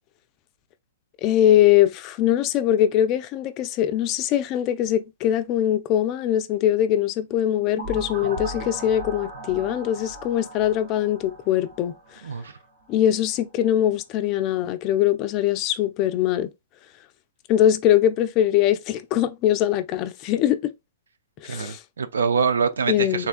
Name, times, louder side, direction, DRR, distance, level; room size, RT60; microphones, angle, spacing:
voice 1, 1.2-11.9 12.9-16.5 17.5-20.7 21.4-21.8 22.9-23.3, left 11 dB, 35° left, 0.4 m, -22 dB
sound 1, 7.8-12.5, right 1 dB, 55° right, 0.9 m, -37 dB
voice 2, 12.2-12.5 21.5-23.3, right 5 dB, 85° right, 0.5 m, -24 dB
3.5 x 2.2 x 2.4 m
hypercardioid pair, 135°, 0 cm